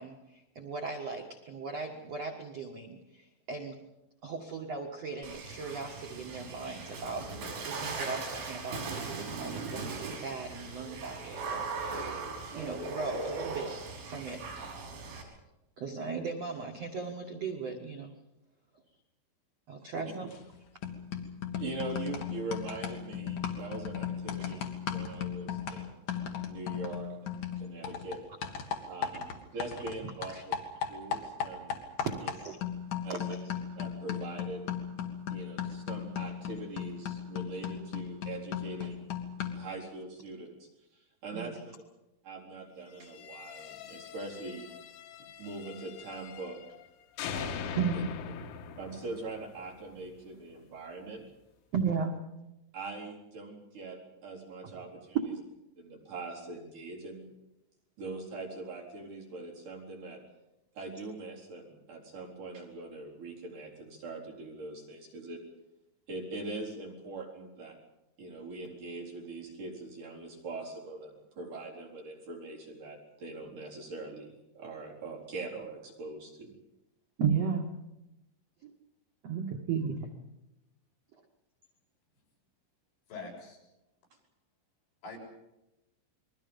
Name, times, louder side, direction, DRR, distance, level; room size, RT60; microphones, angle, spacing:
voice 1, 0.0-3.8 4.2-12.2 12.5-14.4 15.8-18.1 19.7-20.3 28.8-28.9 30.3-30.4 32.4-32.6 41.3-41.6 47.8-47.9 51.7-52.2 77.2-77.7 78.6-78.7 79.2-80.1, right 5 dB, 60° right, 2 dB, 1.7 m, -36 dB
Water / Splash splatter, 5.2-15.2, right 4 dB, 85° right, 7.7 m, -39 dB
sound 1, 20.3-20.6 20.8-30.0 30.2-39.7, left 8 dB, 55° left, 3.1 m, -37 dB
voice 2, 21.6-26.1 26.5-28.2 28.9-30.5 30.9-31.9 32.2-32.3 33.0-33.4 33.8-34.7 35.3-39.1 39.5-41.6 42.2-44.7 45.4-46.6 47.3-48.0 48.8-51.3 52.7-55.2 55.8-57.3 58.0-60.2 60.7-65.4 66.1-67.8 68.2-76.6, right 3 dB, 45° right, -3 dB, 5.2 m, -42 dB
sound 2, 43.0-46.9 47.2-50.2, left 7 dB, 85° left, 3.9 m, -42 dB
voice 3, 83.1-83.6 85.0-85.2, left 4 dB, 70° left, -2 dB, 8.9 m, -43 dB
30.0 x 22.0 x 5.4 m, 0.95 s
omnidirectional pair, 5.5 m